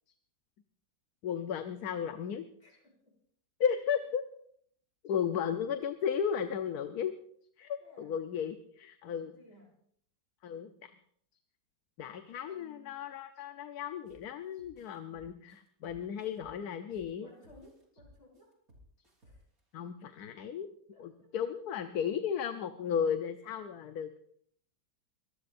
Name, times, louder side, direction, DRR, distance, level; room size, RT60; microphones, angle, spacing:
voice 1, 1.2-2.5 3.6-4.2 5.0-7.1 7.6-9.3 10.4-10.9 12.0-17.3 19.7-20.7 21.0-24.2, left 7 dB, 70° left, 8 dB, 1.3 m, -34 dB
voice 2, 2.6-3.2 5.4-5.5 7.8-8.2 9.2-9.8 12.4-12.9 17.2-18.5 19.2-19.4 20.9-21.3, left 1 dB, 50° left, -3 dB, 6.1 m, -59 dB
sound 1, 14.0-14.2 14.6-17.1 17.4-19.6, left 1 dB, 55° right, 3.9 m, -60 dB
24.5 x 18.5 x 2.6 m, 0.62 s
omnidirectional pair, 1.8 m